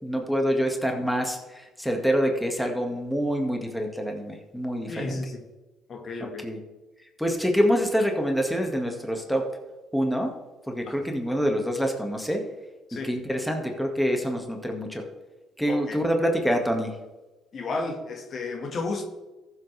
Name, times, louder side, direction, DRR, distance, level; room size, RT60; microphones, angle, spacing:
voice 1, 0.0-5.2 6.4-6.6 7.2-9.5 9.9-10.3 10.7-12.4 13.0-15.0 15.6-16.9, equal, 5° left, 3 dB, 2.0 m, -26 dB
voice 2, 4.9-5.4 5.9-6.5 10.9-11.0 12.9-13.1 15.7-16.0 17.5-19.0, left 3 dB, 50° left, 4 dB, 1.8 m, -32 dB
14.5 x 7.8 x 3.4 m, 1.1 s
supercardioid pair, 80°, 0 cm